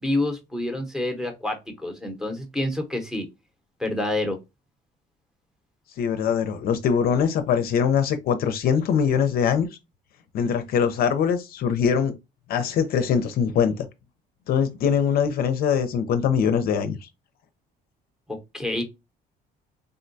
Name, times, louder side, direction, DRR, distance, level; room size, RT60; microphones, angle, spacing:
voice 1, 0.0-3.3 3.8-4.4 18.3-18.8, left 1 dB, 5° right, 0.8 m, -28 dB
voice 2, 6.0-9.7 10.3-12.1 12.5-13.9 14.5-17.1, left 7 dB, 65° left, 0.5 m, -22 dB
3.6 x 2.2 x 2.5 m
cardioid pair, 110°, 17 cm